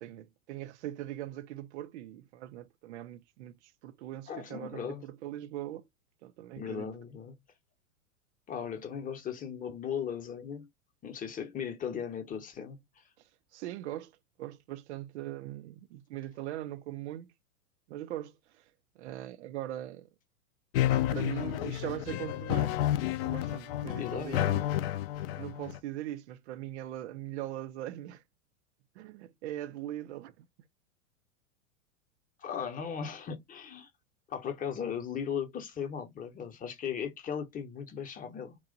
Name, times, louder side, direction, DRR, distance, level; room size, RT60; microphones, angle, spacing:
voice 1, 0.0-5.9 6.2-6.9 13.5-17.3 17.9-18.6 19.0-20.1 20.9-24.7 25.3-28.2 29.0-30.5, right 13 dB, 55° right, 0.5 m, -41 dB
voice 2, 4.3-5.1 6.6-7.3 8.5-10.7 11.0-12.8 24.0-24.5 32.4-33.9 34.3-38.6, left 7 dB, 20° left, 0.8 m, -37 dB
sound 1, 20.7-25.8, left 12 dB, 45° left, 0.5 m, -30 dB
3.0 x 2.4 x 3.8 m
hypercardioid pair, 100°, 43 cm